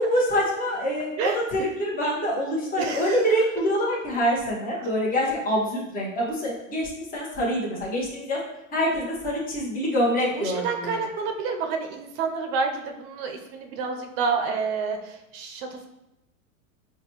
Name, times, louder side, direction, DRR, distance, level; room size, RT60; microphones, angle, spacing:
voice 1, 0.0-8.4 8.7-11.0, equal, 20° left, -4 dB, 1.0 m, -25 dB
voice 2, 2.8-3.3 4.8-4.9 10.3-15.9, right 5 dB, 50° right, 4 dB, 0.6 m, -29 dB
4.7 x 2.3 x 3.0 m, 0.92 s
hypercardioid pair, 105°, 41 cm